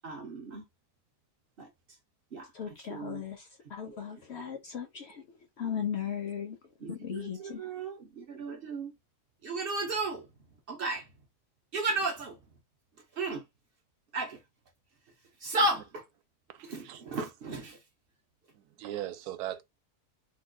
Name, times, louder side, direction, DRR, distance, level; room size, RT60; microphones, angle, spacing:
voice 1, 0.0-0.6 1.6-1.7 2.3-2.5 2.9-3.2 3.9-4.0 6.8-8.9 9.4-10.3 10.7-11.1 11.7-12.4 13.1-13.4 14.1-14.4 15.4-16.0 16.6-17.8, right 2 dB, 65° right, 0.5 m, -34 dB
voice 2, 2.5-5.2 5.6-6.6 6.9-7.7, left 8 dB, 70° left, 0.6 m, -37 dB
voice 3, 16.9-17.2 18.8-19.6, right 13 dB, 80° right, 1.1 m, -38 dB
2.9 x 2.2 x 3.5 m
omnidirectional pair, 1.7 m